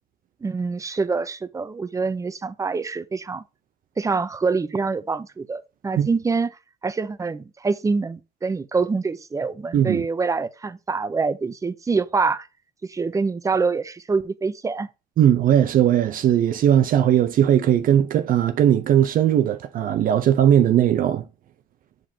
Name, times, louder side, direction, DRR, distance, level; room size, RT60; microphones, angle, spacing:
voice 1, 0.4-3.4 4.0-6.5 6.8-12.5 12.8-14.9, right 4 dB, 20° right, 0.6 m, -25 dB
voice 2, 9.7-10.0 15.2-21.2, right 10 dB, 55° right, 0.6 m, -18 dB
7.6 x 5.0 x 2.7 m
cardioid pair, 110°, 17 cm